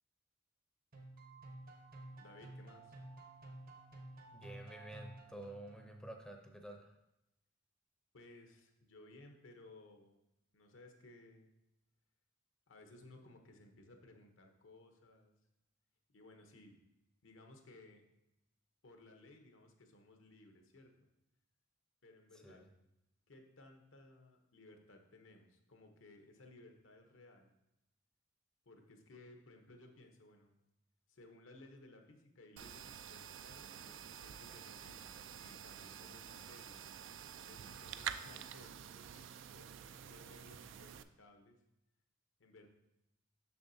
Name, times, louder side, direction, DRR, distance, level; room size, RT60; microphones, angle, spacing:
sound 1, 0.9-6.1, right 2 dB, 50° right, 0.9 m, -53 dB
voice 1, 2.2-2.9 8.1-10.2 10.5-11.5 12.7-15.3 16.1-16.7 17.2-18.0 18.8-20.9 22.0-22.6 23.3-27.5 28.7-30.5 31.1-36.8 37.5-41.6 42.4-42.7, left 2 dB, 80° left, 4 dB, 0.9 m, -60 dB
voice 2, 4.3-6.9 22.4-22.6, right 1 dB, 5° left, 2 dB, 0.5 m, -50 dB
sound 2, 32.6-41.0, right 9 dB, 65° right, 0.3 m, -48 dB
6.9 x 6.2 x 2.7 m, 0.87 s
head